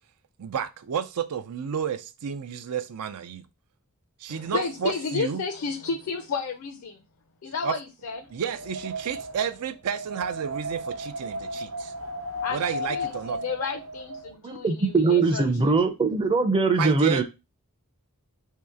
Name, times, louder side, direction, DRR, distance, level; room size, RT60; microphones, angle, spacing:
voice 1, 0.4-3.4 4.2-5.4 7.6-7.8 8.3-11.9 12.5-13.4 16.8-17.2, right 7 dB, 85° right, 0.4 m, -31 dB
voice 2, 4.3-7.0 7.4-8.3 12.4-15.8, left 5 dB, 65° left, 0.5 m, -32 dB
Wind, 8.3-14.3, equal, 65° right, 0.8 m, -35 dB
voice 3, 14.4-17.2, right 3 dB, 25° right, 0.5 m, -22 dB
3.1 x 2.8 x 3.5 m
head